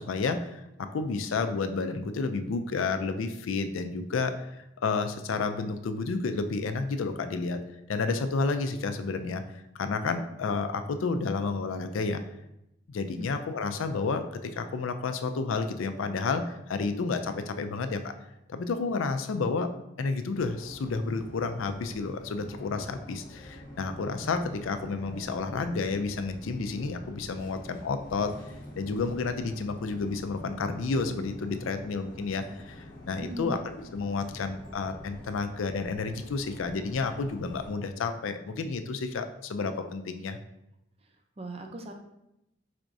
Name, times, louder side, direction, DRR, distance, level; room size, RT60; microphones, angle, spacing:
voice 1, 0.0-7.6 7.9-12.2 12.9-18.1 18.5-19.7 20.0-28.3 28.8-40.4, left 4 dB, 90° left, 8 dB, 0.4 m, -31 dB
sound 1, 20.3-37.7, left 1 dB, 45° left, 0.8 m, -46 dB
voice 2, 33.2-33.6 40.3-40.4 41.4-41.9, right 1 dB, 30° right, 4 dB, 0.5 m, -38 dB
4.7 x 4.2 x 2.6 m, 0.86 s
head